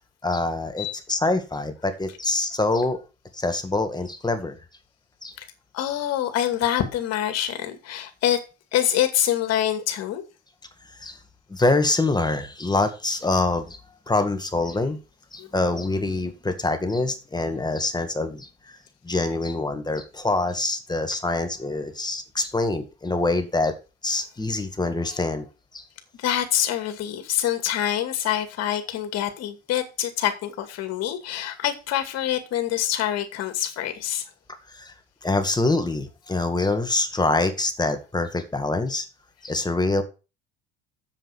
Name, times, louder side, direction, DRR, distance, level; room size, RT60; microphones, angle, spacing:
voice 1, 0.2-3.0 3.3-4.6 5.2-5.3 11.0-11.2 11.5-13.8 14.1-15.0 15.3-18.8 19.0-23.7 24.0-25.5 25.7-25.8 34.7-34.9 35.2-39.0 39.4-40.0, left 2 dB, 15° left, 2.0 m, -25 dB
voice 2, 5.7-8.4 8.7-10.2 15.4-15.5 26.2-34.3, left 11 dB, 60° left, 2.3 m, -25 dB
7.6 x 7.4 x 6.4 m
hypercardioid pair, 70°, 30 cm